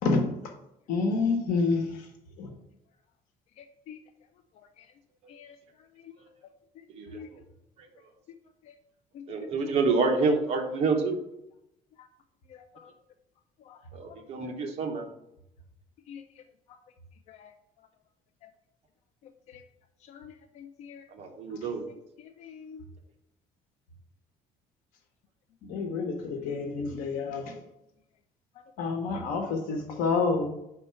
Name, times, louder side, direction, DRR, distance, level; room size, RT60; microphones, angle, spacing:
voice 1, 0.0-0.5 0.9-2.1 2.4-2.5 25.6-27.6 28.8-30.5, left 4 dB, 65° left, 4 dB, 1.2 m, -28 dB
voice 2, 3.6-4.0 5.3-5.6 7.1-7.3 9.1-9.7 12.8-12.9 13.7-13.8 16.1-16.2 17.3-17.5 19.5-19.6 20.1-21.0 22.2-22.8, left 8 dB, 50° left, 8 dB, 0.4 m, -46 dB
voice 3, 6.9-7.4 9.3-11.2 13.9-15.1 21.1-21.8, right 4 dB, 45° right, 3 dB, 1.0 m, -28 dB
5.2 x 4.2 x 5.5 m, 0.84 s
cardioid pair, 175°, 15 cm